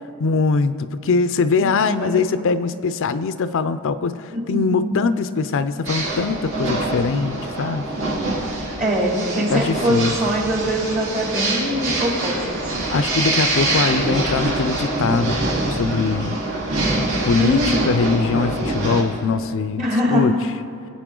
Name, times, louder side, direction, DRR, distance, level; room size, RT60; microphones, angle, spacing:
voice 1, 0.2-7.8 9.5-10.1 12.9-15.4 15.7-16.4 17.2-19.8 20.1-20.3, left 4 dB, 60° left, 12 dB, 0.5 m, -22 dB
voice 2, 1.6-2.2 4.3-4.9 8.8-12.7 17.4-17.9 19.8-20.3, equal, 40° right, -2 dB, 2.7 m, -23 dB
sound 1, 5.8-19.0, right 2 dB, 60° right, 2.1 m, -24 dB
23.0 x 8.7 x 3.8 m, 2.6 s
head